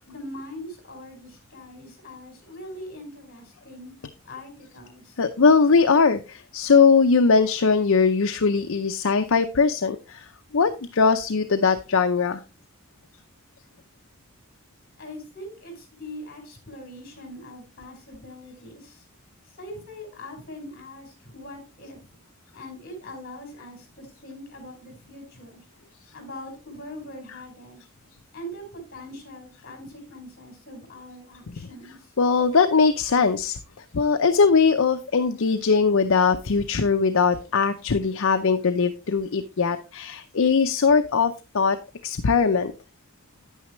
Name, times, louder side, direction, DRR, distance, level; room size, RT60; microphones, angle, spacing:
voice 1, 0.1-3.9 4.2-5.2 15.0-19.0 19.5-22.0 22.5-25.7 26.1-27.8 28.3-32.1, left 1 dB, 45° left, 3 dB, 4.5 m, -42 dB
voice 2, 5.2-10.3 10.5-12.4 32.2-33.6 33.9-41.8 42.0-42.7, left 5 dB, 65° left, 8 dB, 0.6 m, -20 dB
9.6 x 9.1 x 3.1 m, 0.29 s
head